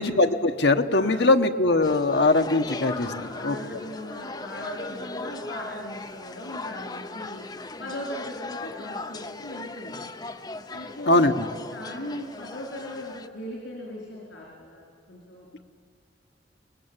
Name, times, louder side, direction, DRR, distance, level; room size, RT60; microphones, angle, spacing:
voice 1, 0.0-3.1 3.4-3.6 11.1-11.4, left 2 dB, 70° left, 6 dB, 1.1 m, -21 dB
voice 2, 0.9-1.3 2.9-7.5 7.8-10.0 10.7-11.3 11.7-15.7, left 1 dB, 90° left, -3 dB, 4.5 m, -38 dB
sound 1, 1.8-13.3, left 3 dB, 20° left, 0.7 m, -38 dB
24.5 x 20.0 x 8.9 m, 2.4 s
head